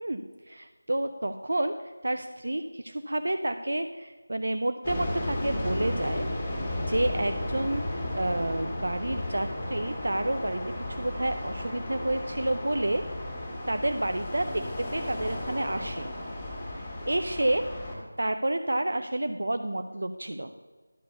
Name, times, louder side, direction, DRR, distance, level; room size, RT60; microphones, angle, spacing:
voice 1, 0.0-6.3 6.9-10.6 10.9-13.0 13.7-16.1 16.7-17.6 18.2-20.5, right 1 dB, 70° right, 8 dB, 0.5 m, -30 dB
sound 1, 4.8-18.0, left 1 dB, 15° left, 1.9 m, -34 dB
11.0 x 4.7 x 6.9 m, 1.4 s
figure-of-eight pair, 170°, 0 cm